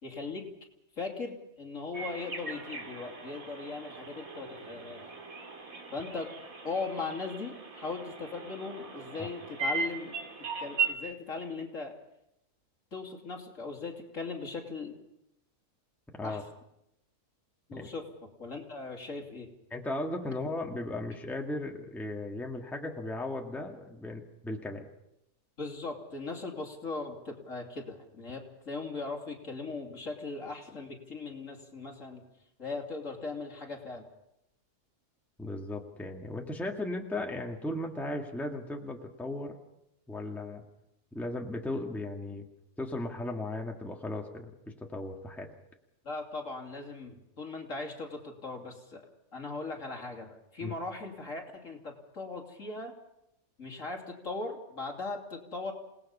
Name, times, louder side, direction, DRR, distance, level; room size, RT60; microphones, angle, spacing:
voice 1, 0.0-0.5 1.0-5.0 5.9-6.3 6.6-10.1 10.6-11.9 12.9-14.9 16.2-16.4 17.7-18.0 18.4-19.5 25.6-32.2 32.6-34.0 46.0-49.1 49.3-52.9 53.6-55.7, left 3 dB, 55° left, 2 dB, 3.2 m, -39 dB
sound 1, 1.9-10.9, right 5 dB, 60° right, 2.8 m, -38 dB
voice 2, 19.7-24.9 35.4-39.5 40.1-40.6 41.1-42.5 42.8-44.5 44.8-45.5 50.6-50.7, left 2 dB, ahead, 1 dB, 1.9 m, -36 dB
28.5 x 19.0 x 5.6 m, 0.83 s
omnidirectional pair, 1.6 m